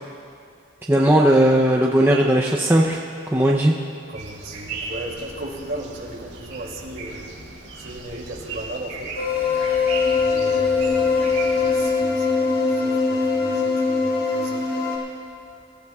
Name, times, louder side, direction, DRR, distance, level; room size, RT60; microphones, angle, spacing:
voice 1, 0.9-3.0 3.3-3.7, right 1 dB, 10° right, -2 dB, 0.6 m, -17 dB
voice 2, 4.1-7.3 7.8-9.2 10.1-14.7, right 1 dB, 50° right, -2 dB, 2.6 m, -36 dB
sound 1, 4.1-11.9, right 4 dB, 75° right, 4.3 m, -36 dB
sound 2, 9.2-15.0, left 4 dB, 75° left, 3.5 m, -21 dB
26.0 x 14.5 x 2.4 m, 2.4 s
head